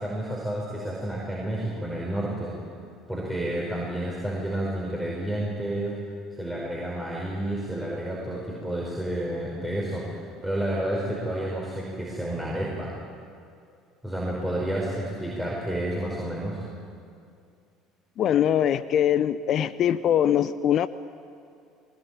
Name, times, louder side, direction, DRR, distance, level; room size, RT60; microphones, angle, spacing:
voice 1, 0.0-2.5 3.1-6.0 6.4-10.2 10.4-12.9 14.0-16.6, right 1 dB, 5° right, -4 dB, 5.4 m, -30 dB
voice 2, 18.2-20.9, left 10 dB, 45° left, 14 dB, 0.6 m, -22 dB
21.0 x 20.0 x 9.0 m, 2.4 s
figure-of-eight pair, 60°, 0 cm